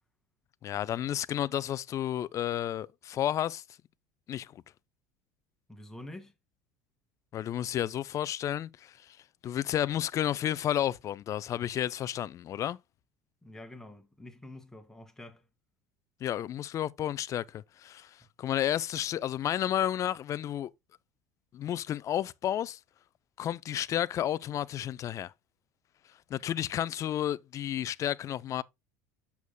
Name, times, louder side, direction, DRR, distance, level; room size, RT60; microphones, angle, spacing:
voice 1, 0.6-3.6 4.3-4.6 7.3-9.2 9.4-12.8 16.2-20.7 21.5-22.8 23.4-25.3 26.3-28.6, left 11 dB, 40° left, 0.5 m, -31 dB
voice 2, 5.7-6.3 13.4-15.5 18.2-18.3, left 1 dB, 5° left, 2.0 m, -47 dB
8.2 x 7.0 x 2.2 m
hypercardioid pair, 75°, 8 cm